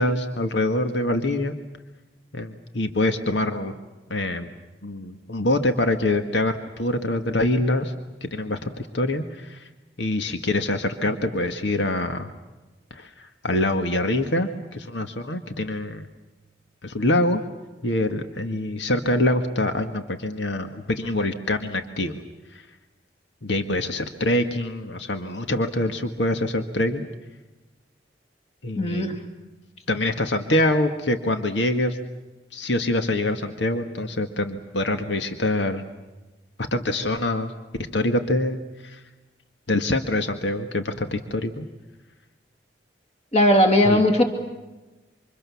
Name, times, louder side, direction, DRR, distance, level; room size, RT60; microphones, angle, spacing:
voice 1, 0.0-1.6 2.3-3.7 4.1-4.5 4.8-7.9 8.2-9.7 10.0-12.3 12.9-16.1 16.8-17.4 17.8-22.2 22.5-22.7 23.4-27.1 28.6-29.2 29.9-32.0 32.5-35.8 36.6-37.5 37.9-39.0 39.7-41.7 43.8-44.0, left 1 dB, 85° left, 7 dB, 1.8 m, -25 dB
voice 2, 28.8-29.1 43.3-44.2, left 1 dB, 35° left, 5 dB, 2.8 m, -18 dB
28.5 x 26.5 x 7.2 m, 1.1 s
head